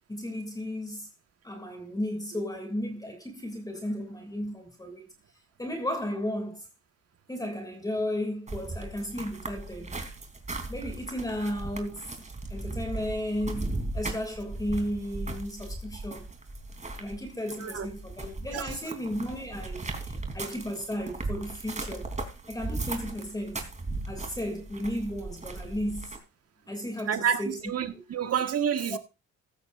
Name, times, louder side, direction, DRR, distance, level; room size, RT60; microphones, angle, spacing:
voice 1, 0.1-1.1 1.4-5.0 5.6-6.7 7.3-9.9 10.7-16.3 17.0-22.1 22.4-23.7 24.1-26.2 26.7-27.6 27.9-28.0 28.9-29.0, left 1 dB, 10° left, 2.8 m, -34 dB
sound 1, 8.5-26.2, right 2 dB, 25° right, 3.5 m, -37 dB
voice 2, 27.1-29.0, right 8 dB, 55° right, 1.7 m, -29 dB
15.5 x 13.5 x 2.6 m
cardioid pair, 90°, 30 cm